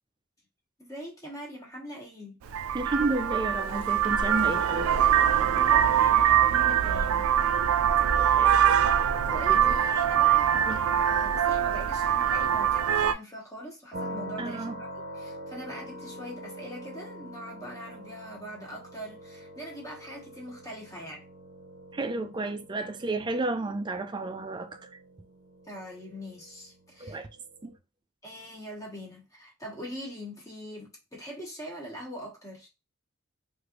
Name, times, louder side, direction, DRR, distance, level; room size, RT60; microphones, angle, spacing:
voice 1, 0.8-2.3 5.5-7.3 8.1-8.4 9.2-21.2 25.6-27.2 28.2-32.7, equal, 15° left, 1.0 m, -42 dB
Vehicle horn car horn honking, 2.5-13.1, right 9 dB, 90° right, 0.4 m, -23 dB
voice 2, 2.7-4.9 8.2-8.5 9.3-9.8 10.6-10.8 14.4-14.8 21.9-24.9 27.0-27.3 27.6-27.7, right 2 dB, 20° right, 0.4 m, -32 dB
sound 1, 13.9-27.8, right 1 dB, 40° right, 0.7 m, -44 dB
3.2 x 2.5 x 2.9 m
head